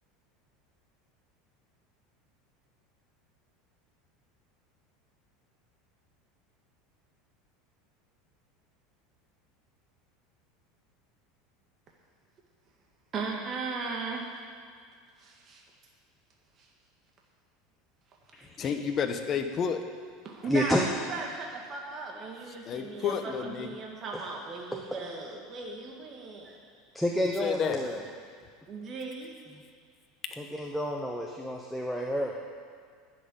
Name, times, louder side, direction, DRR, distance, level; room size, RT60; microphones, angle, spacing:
voice 1, 13.1-14.3 15.2-15.6 16.6-16.7 18.6-18.8 20.2-26.6 28.7-29.3, right 4 dB, 30° right, -1 dB, 1.8 m, -37 dB
voice 2, 18.6-19.8 22.7-23.7 27.4-27.8, left 7 dB, 30° left, 6 dB, 1.0 m, -30 dB
voice 3, 20.5-20.8 24.1-24.2 24.7-24.8 26.4-26.5 26.9-28.1 30.4-32.3, equal, ahead, -1 dB, 0.9 m, -29 dB
11.0 x 7.7 x 9.8 m, 2.1 s
supercardioid pair, 155°, 0 cm